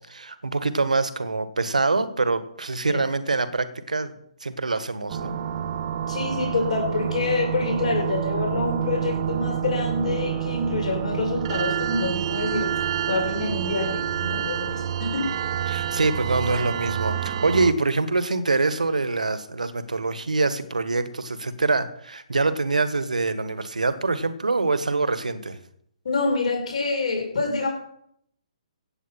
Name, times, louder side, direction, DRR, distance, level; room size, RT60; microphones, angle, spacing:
voice 1, 0.0-4.1 4.4-5.3 15.7-25.6, right 3 dB, 80° right, 12 dB, 1.5 m, -25 dB
sound 1, 5.1-17.7, right 9 dB, 45° right, 1.1 m, -28 dB
voice 2, 6.1-12.7 13.1-15.3 26.0-27.7, left 3 dB, 65° left, 1 dB, 5.4 m, -26 dB
16.0 x 8.4 x 5.7 m, 0.70 s
figure-of-eight pair, 135°, 4 cm